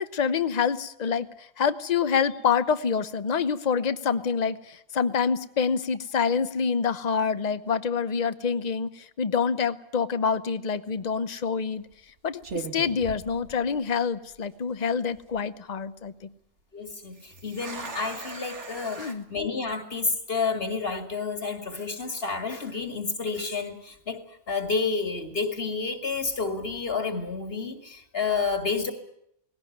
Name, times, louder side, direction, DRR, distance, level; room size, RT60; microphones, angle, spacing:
voice 1, 0.0-11.9 12.2-16.3 19.0-19.2, left 6 dB, 40° left, 13 dB, 0.9 m, -27 dB
sound 1, 10.9-11.2 11.9-12.1 12.4-14.0 14.3-14.4 15.0-15.4 17.1-19.1, right 4 dB, 85° right, 2.2 m, -39 dB
voice 2, 16.7-24.2 24.5-28.9, left 4 dB, 60° left, 6 dB, 2.5 m, -30 dB
19.5 x 17.0 x 9.3 m, 0.76 s
omnidirectional pair, 1.2 m